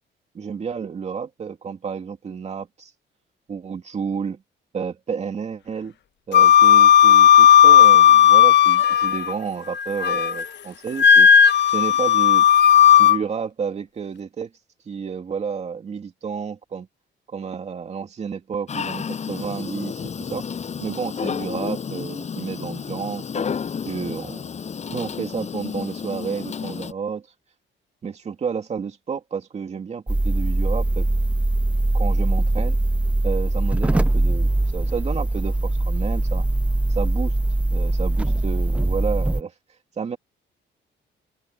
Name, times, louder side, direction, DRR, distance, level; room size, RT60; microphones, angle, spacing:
voice 1, 0.3-2.9 3.5-4.4 4.7-5.9 6.3-11.3 11.7-12.5 13.0-14.5 14.9-16.9 17.3-20.4 20.8-23.5 23.8-24.5 24.9-27.3 28.0-31.1 31.9-32.8 33.2-36.4 36.9-39.5 40.0-40.2, right 6 dB, 35° right, 2.5 m, -31 dB
Wind instrument woodwind instrument, 6.3-9.3 9.7-10.5 11.0-13.2, left 9 dB, 60° left, 1.1 m, -13 dB
Dog, 18.7-26.9, left 6 dB, 35° left, 7.5 m, -31 dB
sound 1, 30.1-39.4, right 2 dB, 5° right, 0.5 m, -21 dB
open air
cardioid pair, 170°, 20 cm